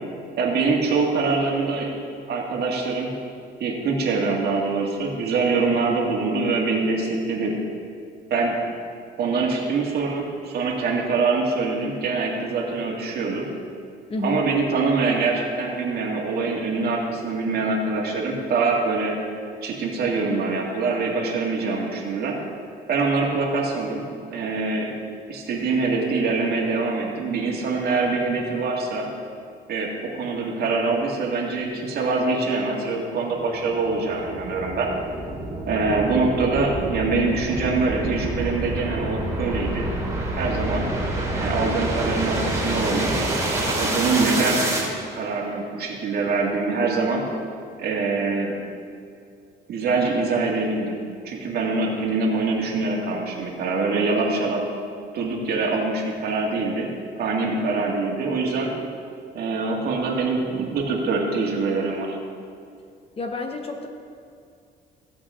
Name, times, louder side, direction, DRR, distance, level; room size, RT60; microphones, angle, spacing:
voice 1, 0.4-1.9 2.3-3.1 3.6-7.6 8.3-8.6 9.2-13.5 14.2-19.1 19.6-22.4 22.9-24.9 25.3-29.1 29.7-34.9 35.7-39.9 40.4-40.9 41.3-43.2 43.8-44.7 45.1-47.2 47.8-48.5 49.7-51.0 51.2-54.6 55.1-56.9 57.2-58.7 59.3-62.2, right 3 dB, 60° right, -1 dB, 2.1 m, -24 dB
sound 1, 33.4-44.9, right 1 dB, 15° right, 2.5 m, -27 dB
voice 2, 63.2-63.9, left 2 dB, 35° left, 4 dB, 1.1 m, -29 dB
16.0 x 7.8 x 3.7 m, 2.4 s
cardioid pair, 115°, 18 cm